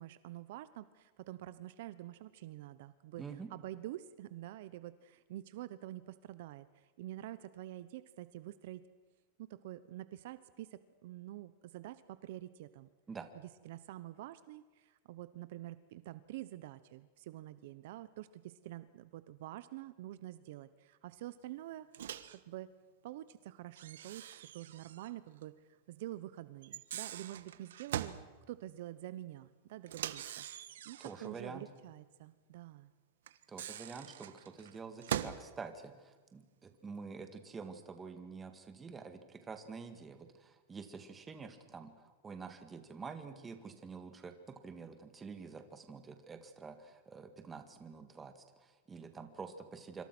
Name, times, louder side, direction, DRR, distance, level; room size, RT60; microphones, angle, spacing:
voice 1, 0.0-3.2 3.5-8.8 9.4-12.9 13.6-22.7 23.0-28.2 28.5-32.9, right 14 dB, 55° right, 14 dB, 0.9 m, -47 dB
voice 2, 3.2-3.5 13.1-13.3 31.0-31.7 33.5-50.0, right 5 dB, 10° right, 8 dB, 1.9 m, -48 dB
Microwave oven, 21.9-22.4 23.8-25.1 25.4-25.5 26.6-28.2 29.9-31.3 33.3-35.5, right 11 dB, 90° right, 1.4 m, -42 dB
26.0 x 26.0 x 6.2 m, 1.3 s
supercardioid pair, 170°, 0 cm